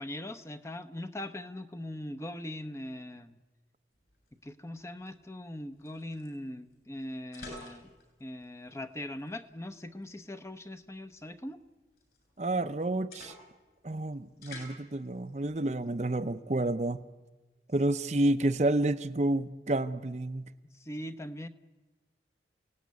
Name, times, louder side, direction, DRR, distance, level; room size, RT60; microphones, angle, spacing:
voice 1, 0.0-3.4 4.4-7.9 8.2-11.6 20.7-21.5, left 1 dB, 15° left, 10 dB, 0.8 m, -41 dB
sound 1, 3.9-16.4, left 2 dB, 60° left, 8.0 m, -54 dB
voice 2, 12.4-13.3 13.8-17.0 17.7-20.5, right 1 dB, 40° right, 10 dB, 0.7 m, -29 dB
29.0 x 17.5 x 9.6 m, 1.2 s
head